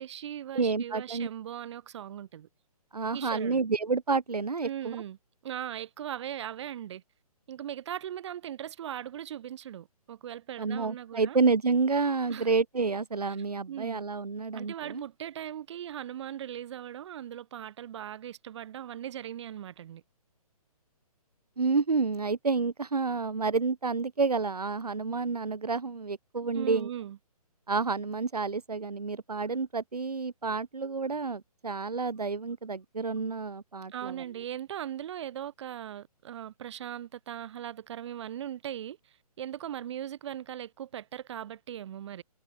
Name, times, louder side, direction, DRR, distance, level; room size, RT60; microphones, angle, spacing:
voice 1, 0.0-2.5 3.1-3.6 4.6-5.2 5.4-7.0 7.5-11.4 12.3-12.5 13.3-13.4 13.7-14.0 14.5-20.0 26.5-27.2 33.9-42.2, right 10 dB, 45° right, 4.2 m, -39 dB
voice 2, 0.5-1.3 2.9-5.0 10.6-15.0 21.6-26.9 27.7-34.1, right 4 dB, 80° right, 2.8 m, -29 dB
figure-of-eight pair, 140°, 20 cm